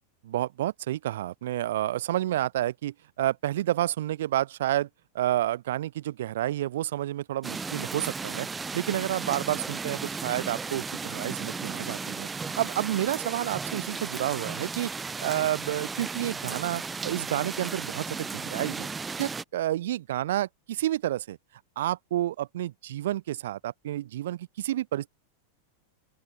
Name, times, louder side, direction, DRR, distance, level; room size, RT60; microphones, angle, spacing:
voice 1, 0.2-4.9 5.1-8.5 8.7-14.9 15.2-18.9 19.2-21.4 21.8-25.1, right 13 dB, 55° right, 0.7 m, -30 dB
sound 1, 7.4-19.4, right 4 dB, 15° right, 2.0 m, -35 dB
open air
figure-of-eight pair, 90°, 0 cm